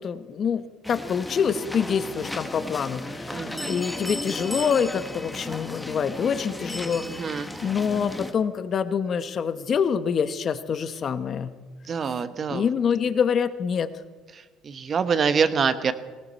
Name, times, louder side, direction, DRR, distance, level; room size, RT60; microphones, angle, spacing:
voice 1, 0.0-11.5 12.5-13.9, left 7 dB, 45° left, 11 dB, 1.0 m, -26 dB
sound 1, 0.8-8.3, left 1 dB, 10° left, 1.2 m, -35 dB
voice 2, 3.3-3.7 7.0-7.5 11.9-12.6 14.6-15.9, right 6 dB, 40° right, 11 dB, 1.1 m, -25 dB
19.0 x 17.0 x 4.2 m, 1.4 s
cardioid pair, 105°, 0 cm